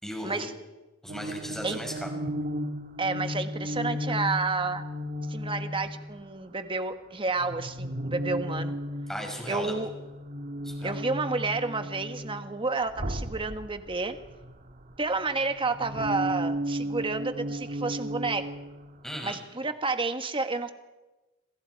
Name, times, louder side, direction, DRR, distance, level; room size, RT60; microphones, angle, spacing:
voice 1, 0.0-0.5 1.0-2.1 9.1-9.7 10.6-11.0 19.0-19.4, equal, ahead, 1 dB, 5.6 m, -36 dB
sound 1, 1.1-6.2 7.4-12.5 12.9-14.9 15.3-19.4, equal, 45° right, 1.6 m, -35 dB
voice 2, 3.0-4.8 5.3-8.8 9.5-9.9 10.8-14.2 15.0-18.4 19.2-20.7, right 3 dB, 25° right, 8 dB, 1.4 m, -30 dB
27.5 x 27.0 x 4.7 m, 1.1 s
head